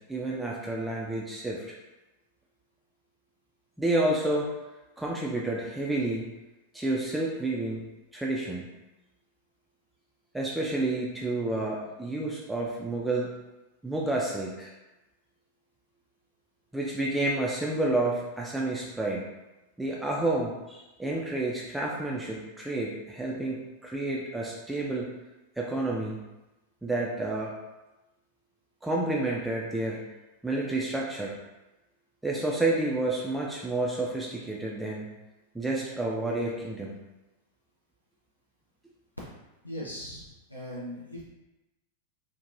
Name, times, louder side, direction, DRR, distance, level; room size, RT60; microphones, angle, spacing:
voice 1, 0.1-1.7 3.8-4.5 5.0-6.3 6.7-7.8 8.1-8.7 10.3-13.3 13.8-14.7 16.7-19.2 19.8-25.1 25.6-26.2 26.8-27.5 28.8-30.1 30.4-31.3 32.2-35.1 35.5-36.9, right 2 dB, 5° right, -4 dB, 0.3 m, -30 dB
voice 2, 39.6-41.2, equal, 85° left, -6 dB, 0.4 m, -39 dB
2.9 x 2.1 x 2.4 m, 1.0 s
figure-of-eight pair, 90°, 0 cm